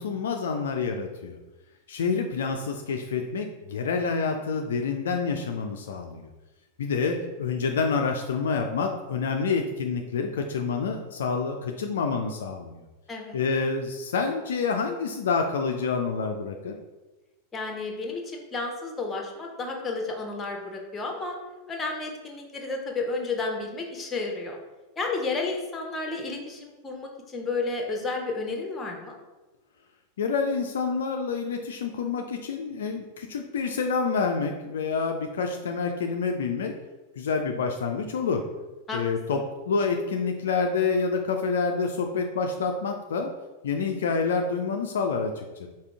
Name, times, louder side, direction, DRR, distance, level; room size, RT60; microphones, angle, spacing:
voice 1, 0.0-1.4 1.9-6.3 6.8-12.8 13.3-16.8 30.2-36.7 37.2-38.4 38.9-43.3 43.6-45.7, left 5 dB, 60° left, 3 dB, 0.3 m, -28 dB
voice 2, 17.5-21.4 21.7-24.6 25.0-29.2 38.9-39.0 39.3-39.4, left 3 dB, 15° left, 2 dB, 0.8 m, -32 dB
5.0 x 2.7 x 3.4 m, 1.1 s
figure-of-eight pair, 90°, 0 cm